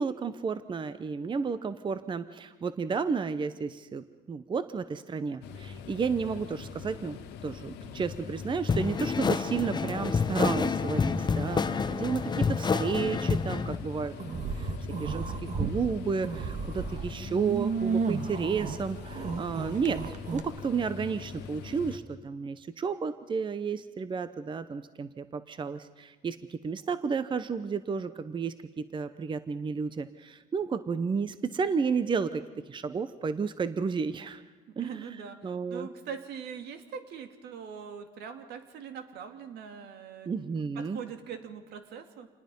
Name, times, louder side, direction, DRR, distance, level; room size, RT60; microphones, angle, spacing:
voice 1, 0.0-14.7 15.0-34.4 34.8-34.9 35.4-35.9 40.3-41.0, right 5 dB, 30° right, 12 dB, 0.8 m, -32 dB
sound 1, 5.4-22.0, left 6 dB, 85° left, 1.4 m, -42 dB
sound 2, 8.7-13.8, left 5 dB, 25° left, 0.8 m, -28 dB
voice 2, 11.4-12.4 34.7-42.3, right 7 dB, 75° right, 7 dB, 2.1 m, -42 dB
sound 3, 14.2-15.8 16.2-20.4, right 5 dB, 45° right, 1.6 m, -33 dB
27.5 x 20.0 x 5.4 m, 1.3 s
cardioid pair, 110°, 17 cm